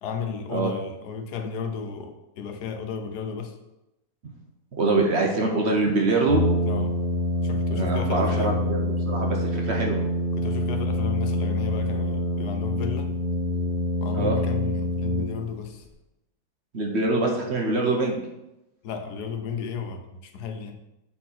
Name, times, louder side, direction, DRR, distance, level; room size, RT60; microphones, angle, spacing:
voice 1, 0.0-3.6 6.6-6.9 7.4-8.6 10.3-13.1 14.0-15.8 18.8-20.8, left 6 dB, 75° left, 6 dB, 1.3 m, -34 dB
voice 2, 4.7-6.4 7.7-10.0 14.1-14.4 16.7-18.2, right 3 dB, 50° right, 1 dB, 1.0 m, -24 dB
Brass instrument, 6.3-15.7, left 1 dB, 40° left, 1.6 m, -26 dB
7.2 x 4.2 x 4.2 m, 0.92 s
omnidirectional pair, 1.8 m